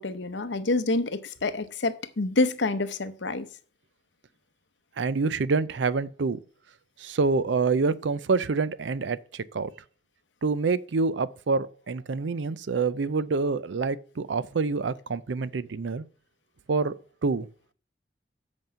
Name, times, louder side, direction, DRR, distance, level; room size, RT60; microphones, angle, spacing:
voice 1, 0.0-3.5, left 2 dB, 75° left, 0.8 m, -27 dB
voice 2, 5.0-6.4 7.0-9.7 10.4-16.0 16.7-16.9 17.2-17.5, right 4 dB, 75° right, 0.5 m, -27 dB
8.0 x 5.3 x 5.6 m
head